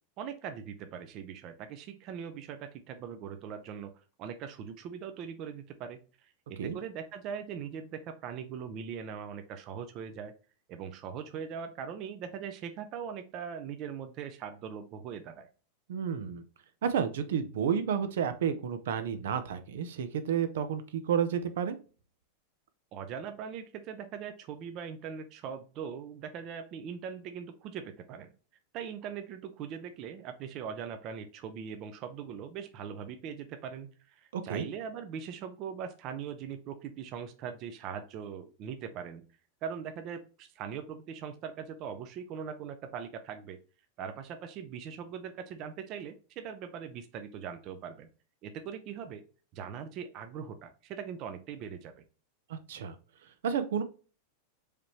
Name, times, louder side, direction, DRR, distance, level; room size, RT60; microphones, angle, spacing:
voice 1, 0.2-3.9 4.2-10.3 10.7-15.5 22.9-28.3 28.7-39.2 39.6-43.6 44.0-48.1 48.4-49.2 49.5-51.9, right 7 dB, 30° right, 7 dB, 0.5 m, -41 dB
voice 2, 15.9-16.4 16.8-21.8 34.3-34.6 52.5-53.0 53.4-53.8, right 7 dB, 80° right, 10 dB, 0.8 m, -31 dB
4.9 x 2.9 x 3.2 m, 0.35 s
supercardioid pair, 170°, 0 cm